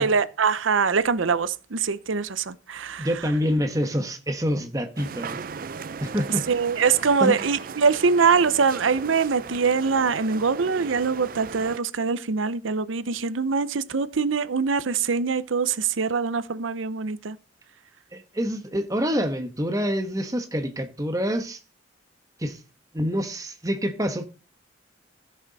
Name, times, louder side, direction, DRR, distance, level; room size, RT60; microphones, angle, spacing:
voice 1, 0.0-3.1 6.5-17.4, right 5 dB, 85° right, 0.7 m, -23 dB
voice 2, 3.0-5.4 6.0-6.5 7.2-7.3 18.1-21.6 22.4-22.6 22.9-24.3, equal, 15° right, 1.1 m, -26 dB
sound 1, 5.0-11.8, right 5 dB, 45° right, 0.4 m, -37 dB
14.0 x 6.6 x 4.1 m
head